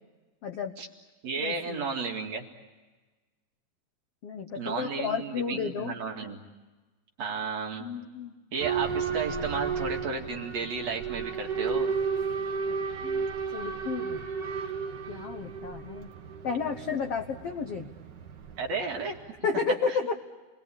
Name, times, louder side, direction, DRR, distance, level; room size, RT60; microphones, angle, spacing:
voice 1, 0.4-0.8 1.4-1.8 4.2-5.9 7.8-8.3 13.0-13.2 13.5-14.2 15.1-16.1 16.4-17.9 19.4-20.1, left 5 dB, 65° left, 5 dB, 1.6 m, -32 dB
voice 2, 1.2-2.5 4.6-6.5 7.2-7.9 8.5-12.0 18.6-19.1 19.9-20.0, right 4 dB, 50° right, 1 dB, 3.1 m, -33 dB
Boat Water vehicle / Alarm, 8.6-19.3, right 5 dB, 70° right, 1.0 m, -33 dB
30.0 x 21.0 x 8.6 m, 1.3 s
omnidirectional pair, 4.3 m